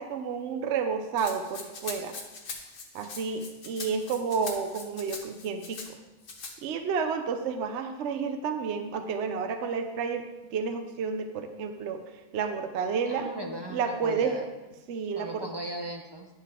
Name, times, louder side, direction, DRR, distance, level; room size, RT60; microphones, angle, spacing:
voice 1, 0.0-2.1 2.9-5.8 6.6-12.0 12.3-13.3 13.7-14.4 14.9-15.4, right 5 dB, 65° right, 6 dB, 0.9 m, -30 dB
Rattle (instrument), 1.2-5.9 6.2-6.5, left 4 dB, 75° left, 1.5 m, -41 dB
voice 2, 13.1-14.5 15.2-16.3, right 1 dB, 25° right, 1 dB, 0.7 m, -37 dB
10.0 x 6.7 x 3.6 m, 1.1 s
omnidirectional pair, 1.4 m